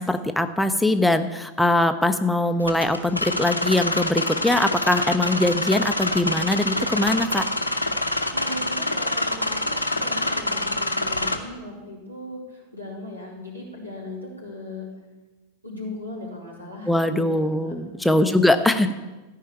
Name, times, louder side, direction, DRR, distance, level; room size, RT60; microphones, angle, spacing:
voice 1, 0.0-7.4 16.9-18.9, left 1 dB, 5° left, 8 dB, 0.6 m, -22 dB
sound 1, 2.6-11.4, left 2 dB, 90° left, 1.0 m, -26 dB
voice 2, 8.3-14.9 15.6-17.7 18.1-18.4 18.7-18.9, left 1 dB, 85° right, -3 dB, 3.9 m, -37 dB
14.0 x 5.6 x 8.7 m, 1.2 s
figure-of-eight pair, 90°, 0 cm